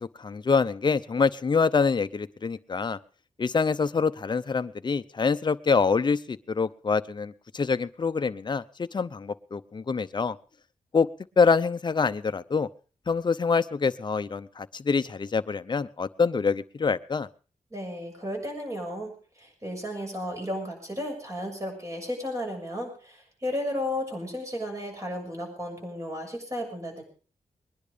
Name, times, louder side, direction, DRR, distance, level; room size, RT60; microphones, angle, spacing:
voice 1, 0.2-3.0 3.4-10.4 10.9-11.1 11.4-12.7 13.1-17.3, left 5 dB, 35° left, 12 dB, 0.7 m, -25 dB
voice 2, 17.7-27.0, left 1 dB, 25° right, 1 dB, 7.0 m, -34 dB
21.0 x 10.5 x 5.1 m, 0.39 s
wide cardioid pair, 100°, 13 cm